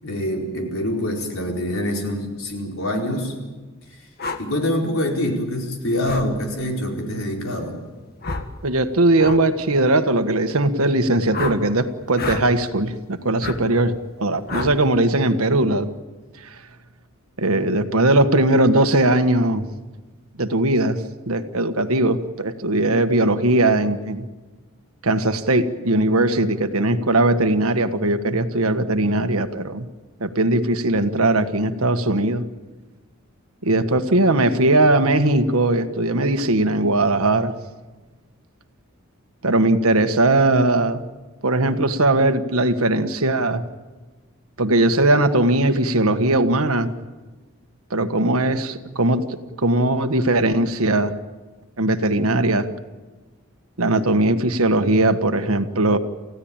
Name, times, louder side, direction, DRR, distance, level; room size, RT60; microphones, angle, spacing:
voice 1, 0.0-3.3 4.4-7.8, left 1 dB, 65° left, 1 dB, 4.7 m, -25 dB
sound 1, 4.2-4.4 6.0-6.3 8.2-8.5 9.2-9.4 11.3-11.6 12.1-12.5 13.4-13.6 14.5-14.8, left 3 dB, 45° left, 1.7 m, -28 dB
voice 2, 8.6-15.9 16.5-16.6 17.4-19.6 20.4-21.0 21.3-24.3 25.0-29.9 30.2-32.4 33.6-37.5 39.4-41.0 41.4-43.6 44.6-46.9 47.9-49.2 49.6-51.1 51.8-52.7 53.8-56.0, right 2 dB, 75° right, 8 dB, 1.5 m, -19 dB
29.0 x 16.0 x 9.0 m, 1.3 s
head